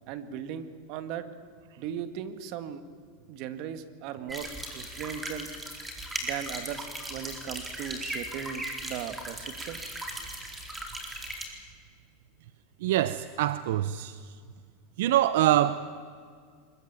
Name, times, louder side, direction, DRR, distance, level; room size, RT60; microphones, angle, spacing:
voice 1, 0.1-1.3 1.8-2.8 3.3-5.5 6.2-10.0, right 9 dB, 55° right, 11 dB, 2.0 m, -38 dB
sound 1, 4.3-11.5, right 1 dB, 10° right, 4.3 m, -38 dB
voice 2, 12.8-14.1 15.0-15.8, right 13 dB, 75° right, 14 dB, 0.8 m, -24 dB
24.0 x 21.5 x 9.0 m, 2.1 s
supercardioid pair, 130°, 0 cm